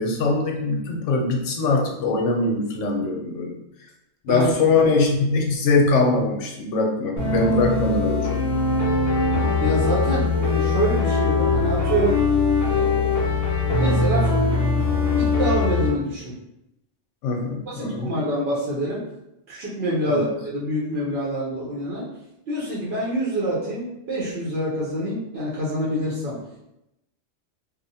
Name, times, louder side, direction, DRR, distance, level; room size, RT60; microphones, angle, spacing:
voice 1, 0.0-3.5 4.2-8.4 17.2-18.2 20.1-20.2, left 3 dB, 75° left, 1 dB, 0.9 m, -22 dB
sound 1, 7.2-15.9, left 3 dB, 15° left, 0.8 m, -21 dB
voice 2, 9.6-12.2 12.7-13.1 13.8-14.3 15.2-16.3 17.7-19.0 19.5-22.1 22.5-26.4, right 1 dB, 60° right, -7 dB, 0.8 m, -26 dB
2.8 x 2.0 x 2.7 m, 0.86 s
omnidirectional pair, 1.3 m